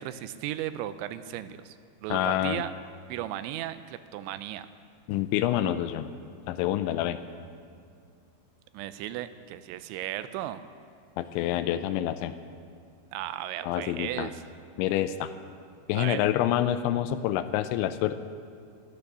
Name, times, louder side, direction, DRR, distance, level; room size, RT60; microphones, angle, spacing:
voice 1, 0.0-1.8 2.0-2.7 3.1-4.7 8.7-10.6 13.1-14.4 15.9-16.2, right 13 dB, 85° right, 12 dB, 2.8 m, -35 dB
voice 2, 2.1-2.6 5.1-6.1 6.5-7.2 11.2-12.3 13.6-14.3 14.8-15.3 15.9-18.2, left 12 dB, 85° left, 11 dB, 2.9 m, -27 dB
14.0 x 12.5 x 6.7 m, 2.4 s
omnidirectional pair, 5.4 m